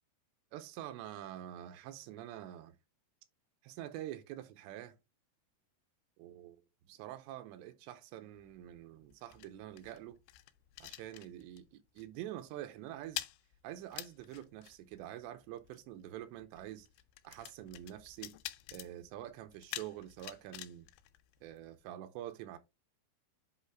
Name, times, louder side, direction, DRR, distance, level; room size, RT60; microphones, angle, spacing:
voice 1, 0.5-2.8 3.6-5.0 6.2-6.6 6.9-10.2 10.8-13.2 13.6-16.9 17.2-18.4 18.7-20.9 21.4-22.6, right 12 dB, 85° right, 2.9 m, -46 dB
sound 1, 8.4-11.7 12.0-12.2 12.5-21.9, left 16 dB, 90° left, 2.9 m, -48 dB
8.0 x 3.2 x 4.4 m
omnidirectional pair, 5.1 m